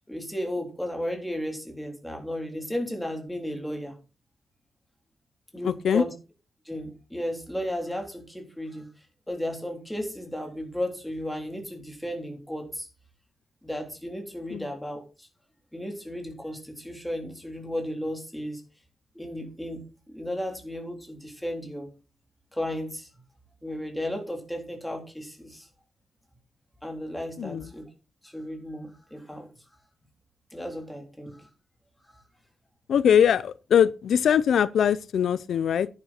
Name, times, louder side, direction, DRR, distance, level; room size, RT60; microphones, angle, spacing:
voice 1, 0.1-4.0 5.5-6.1 6.6-8.9 9.3-12.9 13.6-15.3 15.7-18.6 19.1-21.9 22.5-23.1 23.6-25.7 26.8-27.8 28.2-29.5 30.5-31.5 32.1-32.2, equal, 5° left, 3.4 m, -34 dB
voice 2, 5.6-6.0 14.5-14.7 27.4-27.7 32.9-35.9, left 8 dB, 80° left, 0.5 m, -22 dB
10.5 x 10.5 x 4.3 m
wide cardioid pair, 155°, 0 cm